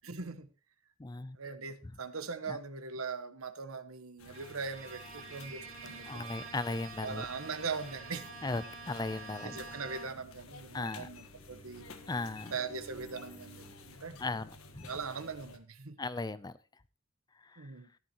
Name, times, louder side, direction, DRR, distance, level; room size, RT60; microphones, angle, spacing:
voice 1, 0.0-0.5 1.4-6.3 7.0-8.3 9.4-11.8 12.5-14.2 14.9-16.0 17.6-17.9, right 5 dB, 85° right, 1.2 m, -40 dB
voice 2, 1.0-1.4 2.5-2.6 6.1-7.2 8.4-9.6 10.7-11.1 12.1-12.5 14.2-14.5 14.8-14.9 16.0-16.5, left 3 dB, 20° left, 0.5 m, -36 dB
sound 1, 4.2-15.6, left 2 dB, 85° left, 1.5 m, -53 dB
Bowed string instrument, 4.3-10.4, right 4 dB, 70° right, 2.6 m, -48 dB
Bowed string instrument 2, 10.4-14.0, equal, 10° right, 1.5 m, -56 dB
13.5 x 11.0 x 3.0 m
head